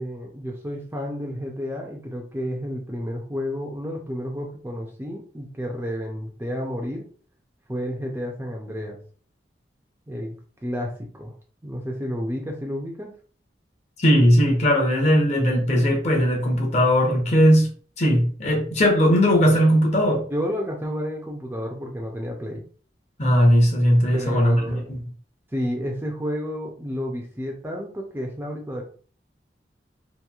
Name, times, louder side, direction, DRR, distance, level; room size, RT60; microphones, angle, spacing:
voice 1, 0.0-7.0 7.7-9.0 10.1-10.4 10.6-11.3 11.6-13.1 20.3-22.6 24.1-24.9 25.5-28.8, equal, 15° right, 0.4 m, -31 dB
voice 2, 14.0-17.7 18.0-20.3 23.2-25.0, equal, 40° left, 0.7 m, -18 dB
2.9 x 2.5 x 2.3 m
head